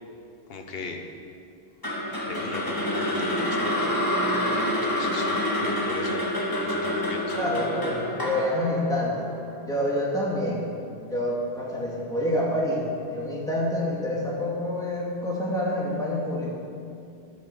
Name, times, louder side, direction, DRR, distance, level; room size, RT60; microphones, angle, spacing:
voice 1, 0.5-1.0 2.3-3.9 4.6-6.2 6.6-7.4, left 3 dB, 60° left, 3 dB, 1.3 m, -38 dB
sound 1, 1.8-10.0, left 1 dB, 20° left, 1.6 m, -27 dB
voice 2, 7.3-9.3 9.6-10.7 11.0-12.8 13.1-16.5, left 1 dB, 5° left, -5 dB, 2.1 m, -27 dB
11.0 x 9.1 x 6.7 m, 2.5 s
omnidirectional pair, 1.1 m